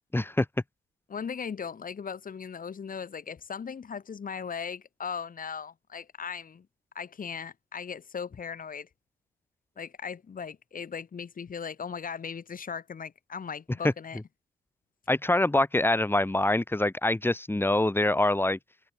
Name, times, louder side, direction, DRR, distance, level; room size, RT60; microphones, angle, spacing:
voice 1, 0.1-0.5 15.1-18.6, left 1 dB, 10° left, 7.0 m, -25 dB
voice 2, 1.1-6.7 6.9-8.9 9.8-14.2, left 6 dB, 45° left, 5.0 m, -38 dB
cardioid pair, 90°, 20 cm